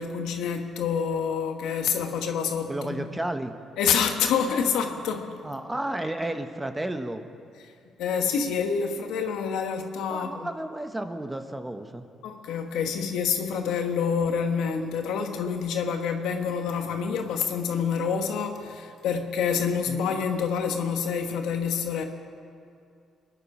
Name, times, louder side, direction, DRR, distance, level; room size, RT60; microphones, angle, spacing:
voice 1, 0.0-3.1 3.8-5.5 8.0-10.5 12.2-22.0, left 6 dB, 90° left, 4 dB, 1.4 m, -27 dB
voice 2, 2.7-3.6 5.4-7.3 10.1-12.1 19.9-20.0, right 1 dB, 15° right, 7 dB, 1.0 m, -32 dB
23.5 x 10.5 x 5.0 m, 2.4 s
cardioid pair, 90°, 0 cm